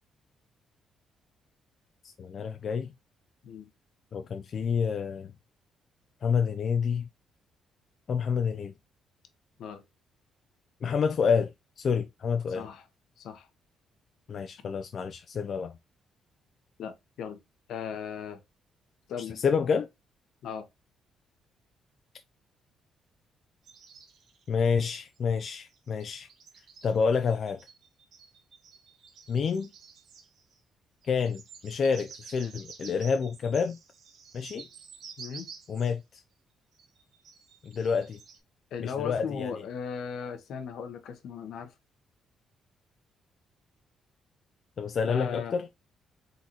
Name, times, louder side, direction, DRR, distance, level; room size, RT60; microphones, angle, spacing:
voice 1, 2.2-2.9 4.1-5.3 6.2-7.1 8.1-8.7 10.8-12.7 14.3-15.7 19.2-19.9 24.5-26.3 26.8-27.6 29.3-29.7 31.1-33.8 34.3-34.7 35.7-36.2 37.6-38.2 38.8-39.6 44.8-45.7, left 6 dB, 55° left, 0.4 m, -28 dB
voice 2, 12.5-12.8 13.2-13.4 16.8-17.4 17.7-18.4 19.1-19.4 20.4-20.7 35.2-35.5 38.7-41.7 45.1-45.6, left 7 dB, 75° left, 0.9 m, -37 dB
sound 1, 23.6-25.2 25.5-30.6 31.0-36.0 36.7-38.4, right 6 dB, 65° right, 1.0 m, -50 dB
4.1 x 3.9 x 2.8 m
cardioid pair, 90°, 0 cm